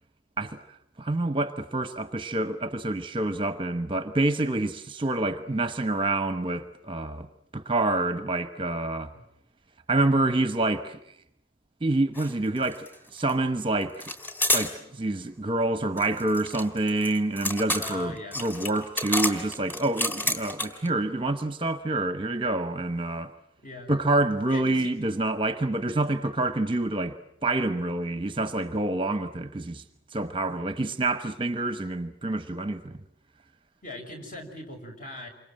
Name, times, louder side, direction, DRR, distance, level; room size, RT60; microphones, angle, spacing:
voice 1, 1.0-7.3 7.5-9.1 9.9-11.0 11.8-14.1 14.5-23.3 23.9-29.8 30.1-33.0, right 2 dB, 25° right, 1.0 m, -27 dB
sound 1, 12.2-12.3 12.6-13.3 14.0-14.7 16.0-20.9, equal, 10° left, 3.4 m, -29 dB
voice 2, 17.8-18.4 20.2-20.3 23.6-23.9 24.5-25.0 33.8-35.3, left 1 dB, 40° left, 6.6 m, -40 dB
29.0 x 26.0 x 7.7 m
head